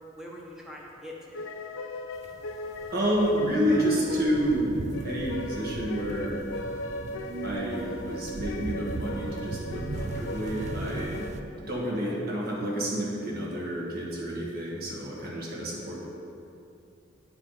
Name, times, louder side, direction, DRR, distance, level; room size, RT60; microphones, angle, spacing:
voice 1, 0.2-1.5 11.4-12.1, equal, ahead, -3 dB, 0.9 m, -45 dB
sound 1, 1.3-11.3, left 2 dB, 90° left, 0.5 m, -38 dB
sound 2, 2.2-11.4, right 3 dB, 35° right, 0.3 m, -38 dB
voice 2, 2.9-6.4 7.4-11.3 11.7-16.0, equal, 50° right, -4 dB, 1.5 m, -29 dB
9.6 x 4.8 x 3.9 m, 2.7 s
head